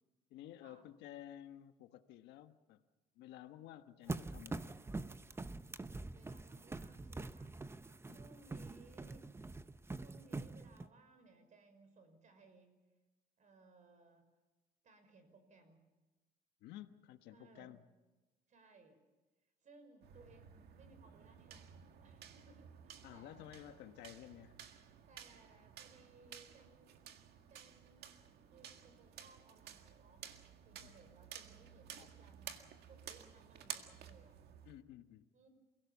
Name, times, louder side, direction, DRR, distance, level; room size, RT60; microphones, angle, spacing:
voice 1, 0.3-2.8 3.2-4.8 8.1-8.2 16.6-17.8 23.0-24.6 30.8-30.9 32.0-32.1 34.6-35.3, left 12 dB, 90° left, 9 dB, 1.3 m, -53 dB
sound 1, 4.1-10.9, right 3 dB, 15° right, 0.8 m, -45 dB
voice 2, 6.1-9.3 10.0-12.8 13.4-14.2 14.8-15.8 17.3-17.8 18.5-19.0 19.6-21.6 22.0-23.5 25.1-26.9 27.5-28.1 28.5-30.3 30.6-34.4 35.3-35.5, right 3 dB, 45° right, 8 dB, 5.5 m, -64 dB
sound 2, 20.0-34.8, right 9 dB, 75° right, 1.9 m, -54 dB
28.5 x 17.0 x 7.3 m, 1.2 s
cardioid pair, 110°, 17 cm